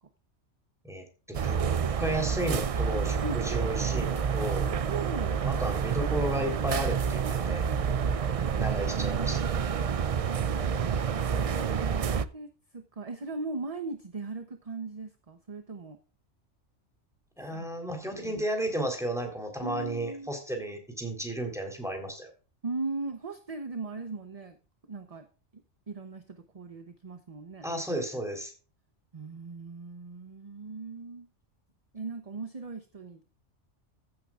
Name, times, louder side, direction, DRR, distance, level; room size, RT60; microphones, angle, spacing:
voice 1, 0.8-1.6 2.0-4.7 5.4-7.7 8.6-9.6 17.4-22.3 27.6-28.5, right 1 dB, ahead, 3 dB, 3.6 m, -33 dB
sound 1, 1.3-12.2, right 7 dB, 50° right, 0.4 m, -28 dB
voice 2, 4.9-5.5 8.2-9.8 11.0-16.0 17.5-17.7 18.0-18.4 19.6-20.3 22.6-24.6 24.9-25.3 25.9-27.7 29.1-31.3 31.9-33.2, right 3 dB, 35° right, 8 dB, 0.9 m, -39 dB
15.0 x 8.5 x 2.4 m, 0.35 s
omnidirectional pair, 1.2 m